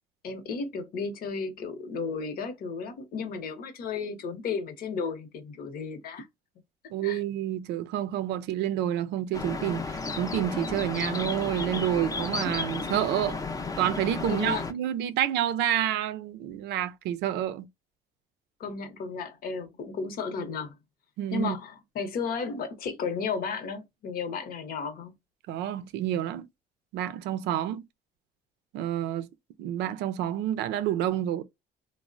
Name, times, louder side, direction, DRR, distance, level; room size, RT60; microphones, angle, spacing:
voice 1, 0.2-6.3 7.0-7.2 14.3-14.7 18.6-20.7 21.3-25.1, left 5 dB, 60° left, 0.8 m, -34 dB
voice 2, 6.9-13.4 13.8-17.7 21.2-21.6 25.5-26.5 26.9-27.8 28.7-29.3 29.6-31.4, right 11 dB, 85° right, 0.5 m, -29 dB
sound 1, 9.3-14.7, left 4 dB, 20° left, 0.5 m, -33 dB
3.1 x 2.1 x 2.5 m
cardioid pair, 110°, 17 cm